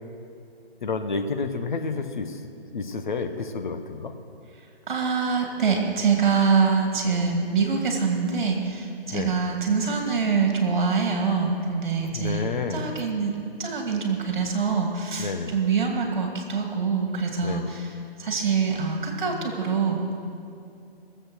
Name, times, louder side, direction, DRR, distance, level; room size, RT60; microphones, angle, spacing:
voice 1, 0.8-2.4 2.7-4.1 9.1-9.3 12.1-12.8 15.2-15.5 17.4-17.7, left 4 dB, 50° left, 7 dB, 1.0 m, -30 dB
voice 2, 4.9-17.9 18.2-20.2, right 5 dB, 50° right, 2 dB, 2.5 m, -25 dB
18.5 x 7.9 x 6.3 m, 2.5 s
figure-of-eight pair, 150°, 30 cm